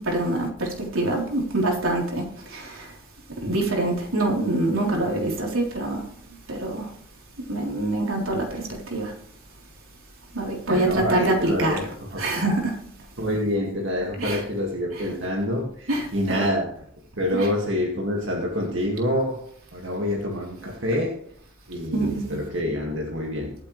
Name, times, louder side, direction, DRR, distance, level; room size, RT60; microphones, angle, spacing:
voice 1, 0.0-2.9 3.4-6.0 6.5-6.9 7.5-9.1 10.3-12.8 14.2-14.4 14.9-15.1 15.9-16.5 17.3-17.5 21.9-22.5, right 2 dB, 90° right, 3.8 m, -25 dB
voice 2, 10.7-11.8 12.1-12.2 13.2-16.7 17.2-19.4 19.7-21.2 21.7-23.7, left 1 dB, 60° right, 2.1 m, -26 dB
24.0 x 8.3 x 3.3 m
head